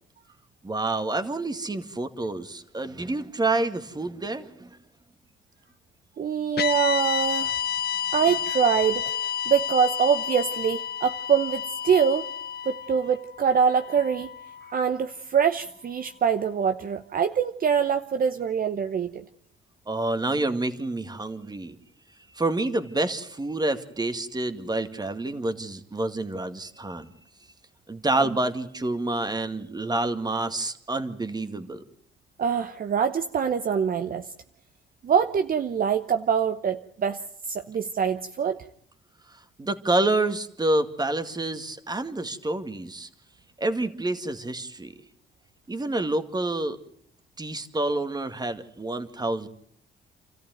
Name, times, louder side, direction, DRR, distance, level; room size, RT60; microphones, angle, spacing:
voice 1, 0.6-4.8 19.9-21.8 22.3-27.1 27.9-31.8 39.3-43.1 43.6-44.9 45.7-46.8 47.4-49.5, right 2 dB, 20° right, 9 dB, 2.1 m, -28 dB
voice 2, 6.2-7.5 8.1-9.1 9.5-12.3 12.7-14.3 14.6-19.2 32.4-34.3 35.0-37.2 37.5-38.6, right 7 dB, 45° right, 9 dB, 0.9 m, -24 dB
sound 1, 6.6-14.9, left 9 dB, 55° left, 0.8 m, -31 dB
28.5 x 14.0 x 9.3 m, 0.69 s
cardioid pair, 90°, 20 cm